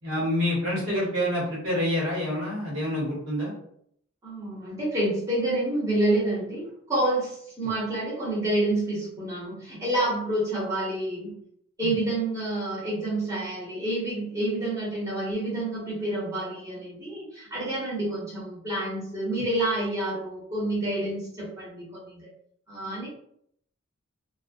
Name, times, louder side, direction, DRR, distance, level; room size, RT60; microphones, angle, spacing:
voice 1, 0.0-3.5 11.8-11.9, left 1 dB, 65° right, -6 dB, 1.2 m, -27 dB
voice 2, 4.2-11.4 11.8-22.3 22.7-23.1, right 1 dB, 15° right, -8 dB, 0.9 m, -28 dB
2.3 x 2.2 x 2.5 m, 0.68 s
head